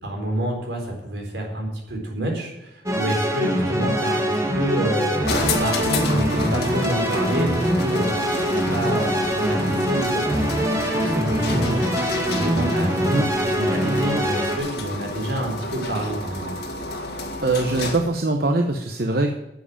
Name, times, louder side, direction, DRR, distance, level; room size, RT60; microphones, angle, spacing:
voice 1, 0.0-5.2 5.6-8.1 8.5-11.8 12.2-16.5, right 1 dB, 80° right, 0 dB, 4.2 m, -28 dB
sound 1, 2.9-14.6, equal, 15° right, 1.5 m, -23 dB
sound 2, 5.2-18.2, left 2 dB, 60° left, 2.0 m, -30 dB
voice 2, 17.4-19.3, right 2 dB, 60° right, 4 dB, 1.0 m, -22 dB
10.5 x 7.9 x 8.6 m, 0.93 s
head